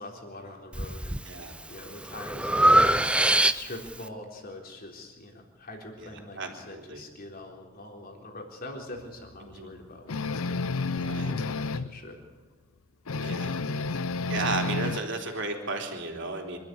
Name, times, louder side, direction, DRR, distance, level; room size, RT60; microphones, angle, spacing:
voice 1, 0.0-10.4 11.1-12.2, left 1 dB, 45° left, 2 dB, 3.9 m, -44 dB
Breathing, 0.7-1.2 1.7-3.9, right 1 dB, 5° right, 0.6 m, -23 dB
voice 2, 1.3-1.6 6.4-6.5 6.7-7.0 9.4-9.7 11.0-11.3 13.2-13.7 14.3-16.6, right 3 dB, 60° right, 3 dB, 3.5 m, -34 dB
sound 1, 10.1-11.9 13.1-15.0, left 3 dB, 75° left, 0.7 m, -30 dB
25.5 x 13.0 x 9.5 m, 1.3 s
head